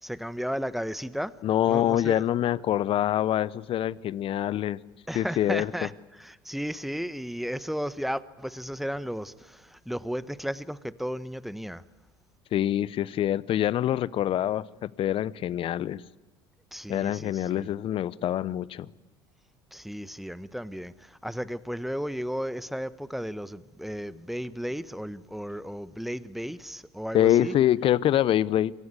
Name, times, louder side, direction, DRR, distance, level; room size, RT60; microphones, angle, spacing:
voice 1, 0.0-1.3 1.7-2.2 5.1-11.8 16.7-17.7 19.7-27.5, equal, ahead, 1.2 m, -34 dB
voice 2, 1.4-4.8 5.1-5.7 12.5-16.0 16.9-18.9 27.1-28.7, left 11 dB, 50° left, 0.9 m, -25 dB
27.5 x 24.0 x 8.4 m
hypercardioid pair, 65°, 12 cm